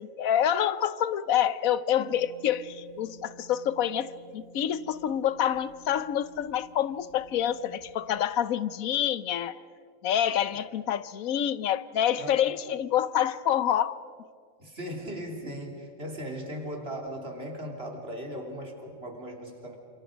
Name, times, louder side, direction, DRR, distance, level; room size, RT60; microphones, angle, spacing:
voice 1, 0.0-9.6 10.0-13.9, left 10 dB, 85° left, 16 dB, 1.2 m, -27 dB
sound 1, 2.0-8.2, right 2 dB, 75° right, 2.4 m, -54 dB
voice 2, 14.6-19.8, equal, 45° right, 1 dB, 3.7 m, -38 dB
29.5 x 27.0 x 5.1 m, 2.2 s
omnidirectional pair, 1.4 m